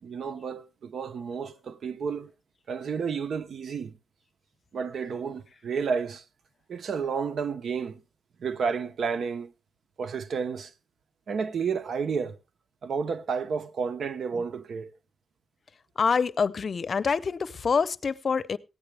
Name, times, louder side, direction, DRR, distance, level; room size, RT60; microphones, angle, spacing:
voice 1, 0.0-2.3 2.7-3.9 4.7-6.2 6.7-8.0 8.4-9.5 10.0-10.7 11.3-12.4 12.8-14.9, right 6 dB, 75° right, 0.8 m, -31 dB
voice 2, 16.0-18.6, left 5 dB, 55° left, 0.6 m, -26 dB
16.0 x 9.7 x 3.3 m
cardioid pair, 80°, 0 cm